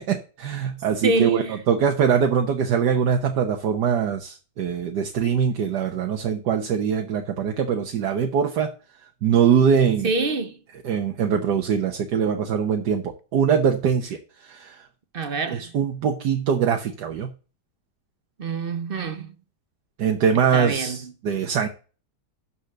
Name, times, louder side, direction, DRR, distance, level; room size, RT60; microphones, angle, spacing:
voice 1, 0.0-8.7 9.2-10.1 10.8-14.9 15.5-17.3 20.0-21.7, right 7 dB, 75° right, 1.6 m, -22 dB
voice 2, 1.0-1.6 10.0-10.6 15.1-15.7 18.4-19.3 20.5-21.1, right 3 dB, 45° right, 0.8 m, -26 dB
12.5 x 4.4 x 6.5 m
omnidirectional pair, 1.8 m